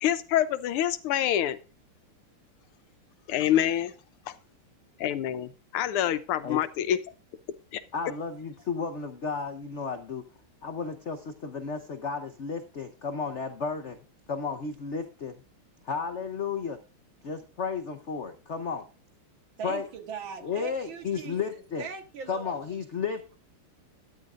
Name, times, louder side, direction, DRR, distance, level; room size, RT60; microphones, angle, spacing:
voice 1, 0.0-1.6 3.3-3.9 4.3-4.4 5.0-7.0 7.7-7.8, left 11 dB, 85° left, 12 dB, 1.6 m, -26 dB
voice 2, 7.9-10.2 10.6-14.0 14.3-15.4 15.8-16.8 17.2-18.8 19.6-19.9 20.4-21.9 22.3-23.3, left 5 dB, 65° left, 6 dB, 0.7 m, -33 dB
voice 3, 19.6-22.7, right 6 dB, 65° right, 6 dB, 2.0 m, -40 dB
13.0 x 9.6 x 2.5 m, 0.33 s
omnidirectional pair, 2.4 m